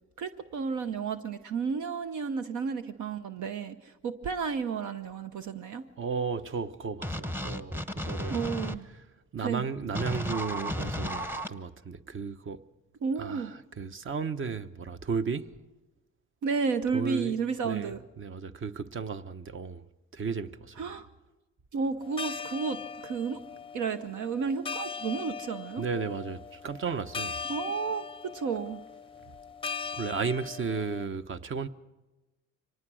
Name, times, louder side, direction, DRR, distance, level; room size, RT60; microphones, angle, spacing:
voice 1, 0.2-5.8 8.3-8.9 9.4-9.6 13.0-13.5 16.4-18.0 20.8-21.1 21.7-23.4 23.7-25.8 27.5-28.8, right 5 dB, 75° right, 0.9 m, -32 dB
voice 2, 6.0-8.4 9.3-12.6 13.2-15.5 16.9-17.3 17.6-19.9 20.1-20.9 25.8-27.4 29.9-31.7, right 5 dB, 40° right, 1.0 m, -34 dB
sound 1, 7.0-8.8 10.0-11.5, equal, 5° right, 1.0 m, -33 dB
sound 2, 22.0-31.1, left 6 dB, 20° left, 0.6 m, -40 dB
24.5 x 19.0 x 6.3 m
cardioid pair, 90°, 30 cm